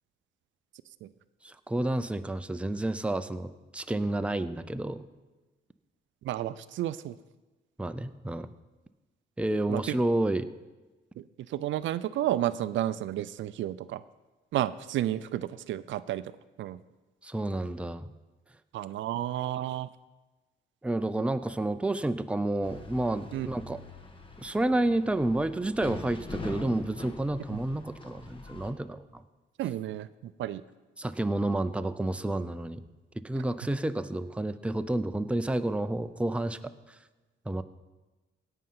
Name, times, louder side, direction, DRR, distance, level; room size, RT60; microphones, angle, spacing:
voice 1, 1.4-5.0 7.8-8.5 9.4-10.5 17.2-18.1 20.8-23.8 24.4-29.2 31.0-32.8 33.2-36.6 37.5-37.6, right 1 dB, 5° right, 10 dB, 0.5 m, -30 dB
voice 2, 6.2-7.1 9.7-10.0 11.5-14.0 14.5-16.2 16.6-16.8 18.7-19.9 23.3-23.5 27.5-27.6 29.6-30.1 30.4-30.6, right 13 dB, 75° right, 15 dB, 0.5 m, -31 dB
sound 1, 22.6-28.7, left 3 dB, 25° left, 1.4 m, -43 dB
17.0 x 5.6 x 5.7 m, 1.2 s
cardioid pair, 90°, 20 cm